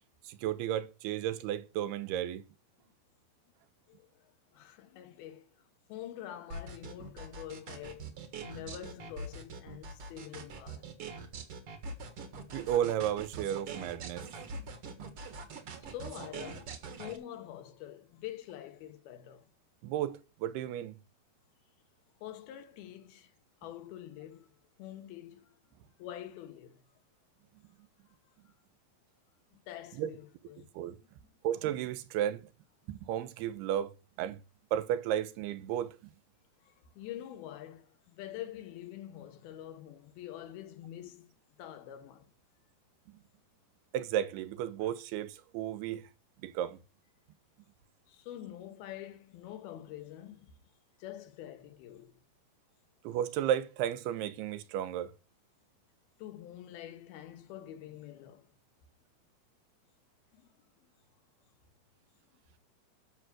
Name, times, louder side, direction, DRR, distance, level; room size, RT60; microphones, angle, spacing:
voice 1, 0.2-2.4 12.5-14.3 14.6-14.7 15.0-15.1 19.8-20.9 29.9-30.1 30.8-31.0 31.4-32.4 32.9-34.4 34.7-36.0 43.9-46.1 46.4-46.8 53.0-55.1, right 11 dB, 85° right, 2.8 m, -33 dB
voice 2, 3.9-5.5 5.9-8.1 8.4-10.9 15.8-19.5 22.2-23.3 23.6-24.5 24.8-25.6 26.0-26.8 29.5-30.7 31.0-31.1 36.6-42.3 48.1-50.5 51.0-52.2 56.2-58.5 60.4-60.5, left 12 dB, 75° left, 2.9 m, -46 dB
sound 1, 6.5-17.2, right 4 dB, 55° right, 1.7 m, -43 dB
10.5 x 6.5 x 6.1 m
omnidirectional pair, 4.5 m